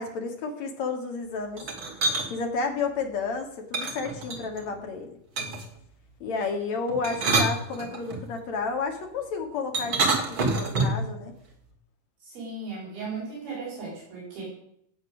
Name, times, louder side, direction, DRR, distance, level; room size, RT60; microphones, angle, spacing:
voice 1, 0.0-1.6 2.3-5.2 6.2-11.3, left 4 dB, 50° left, 3 dB, 2.9 m, -31 dB
sound 1, 1.6-2.3 3.7-4.7 5.4-5.8 6.9-8.2 9.7-11.1, right 3 dB, 40° right, 2.3 m, -26 dB
voice 2, 12.2-14.4, right 4 dB, 65° right, -5 dB, 6.8 m, -36 dB
18.0 x 8.3 x 6.4 m, 0.72 s
omnidirectional pair, 4.5 m